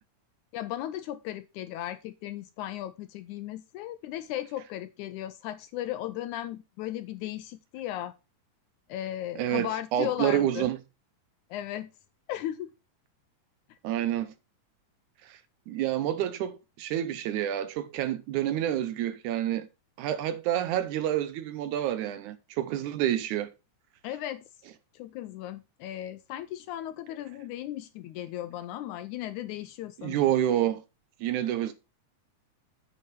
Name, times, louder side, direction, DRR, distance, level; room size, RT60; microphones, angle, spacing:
voice 1, 0.5-8.1 8.9-10.7 11.5-11.9 12.3-12.7 24.0-24.4 24.9-30.3, left 13 dB, 80° left, 1.8 m, -36 dB
voice 2, 9.4-10.8 13.8-14.3 15.2-15.4 15.7-19.7 20.0-23.5 30.0-30.8 31.2-31.7, right 11 dB, 75° right, 1.9 m, -28 dB
8.6 x 8.0 x 3.1 m
omnidirectional pair, 3.8 m